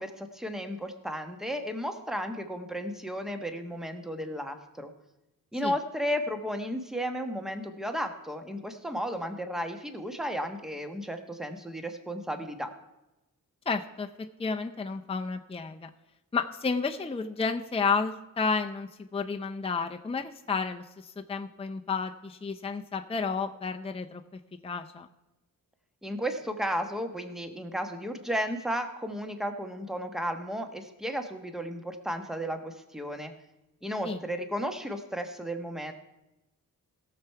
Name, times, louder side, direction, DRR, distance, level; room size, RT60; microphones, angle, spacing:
voice 1, 0.0-4.9 5.5-12.7 26.0-33.3 33.8-35.9, equal, ahead, 6 dB, 1.2 m, -34 dB
voice 2, 13.7-14.1 14.4-15.9 16.3-25.1 34.0-34.2, left 4 dB, 15° left, 5 dB, 0.6 m, -31 dB
17.0 x 7.0 x 4.6 m, 0.98 s
wide cardioid pair, 95°, 36 cm